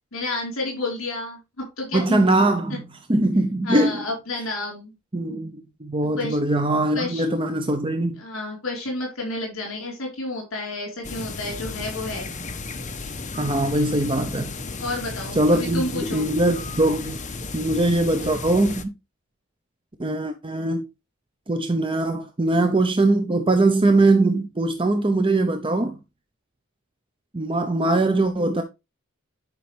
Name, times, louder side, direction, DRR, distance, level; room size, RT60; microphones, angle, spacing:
voice 1, 0.1-2.2 3.6-4.9 6.2-6.4 6.9-7.3 8.2-12.3 14.8-16.3, left 2 dB, 70° left, 4.2 m, -30 dB
voice 2, 1.9-4.0 5.1-8.2 13.4-14.5 15.4-17.2 17.5-18.9 20.0-20.9 21.5-26.0 27.3-28.6, right 2 dB, 25° right, 0.8 m, -21 dB
sound 1, 11.0-18.8, left 3 dB, 35° left, 1.1 m, -34 dB
10.5 x 5.6 x 3.4 m
head